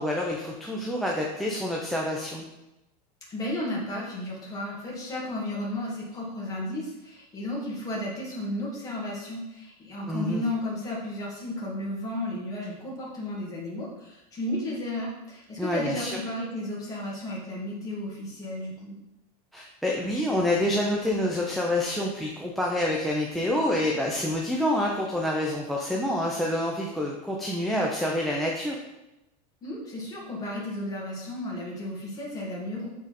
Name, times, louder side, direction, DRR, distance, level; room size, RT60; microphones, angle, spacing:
voice 1, 0.0-2.4 10.1-10.4 15.6-16.2 19.5-28.8, left 1 dB, ahead, -1 dB, 0.4 m, -27 dB
voice 2, 3.3-19.0 29.6-32.9, left 1 dB, 15° left, -4 dB, 1.7 m, -33 dB
7.2 x 3.8 x 4.1 m, 0.94 s
supercardioid pair, 160°, 21 cm